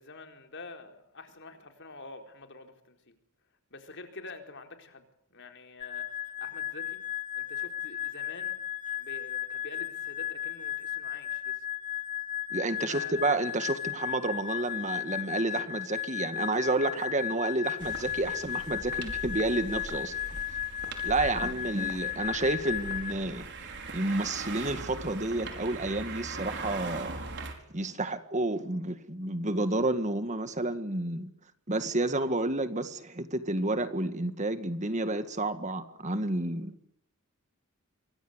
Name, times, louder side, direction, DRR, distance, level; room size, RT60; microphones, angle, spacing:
voice 1, 0.0-3.1 3.7-7.1 7.3-8.6 9.0-11.6 12.9-13.5, left 3 dB, 55° left, 4.3 m, -47 dB
sound 1, 5.8-23.1, left 11 dB, 35° left, 1.1 m, -35 dB
voice 2, 12.5-20.2 21.0-31.3 31.7-36.9, right 2 dB, 35° right, 1.9 m, -30 dB
sound 2, 17.8-27.5, right 3 dB, 55° right, 4.9 m, -41 dB
27.5 x 24.5 x 8.2 m
head